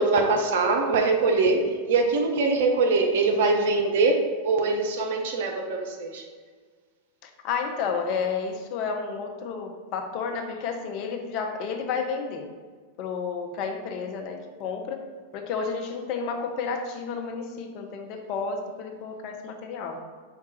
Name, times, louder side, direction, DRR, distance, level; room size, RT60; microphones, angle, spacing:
voice 1, 0.0-6.2, right 3 dB, 55° right, 3 dB, 0.6 m, -23 dB
voice 2, 7.2-12.5 13.0-15.0 15.3-20.0, left 5 dB, 40° left, 4 dB, 0.5 m, -31 dB
4.7 x 2.4 x 4.1 m, 1.5 s
figure-of-eight pair, 90°, 0 cm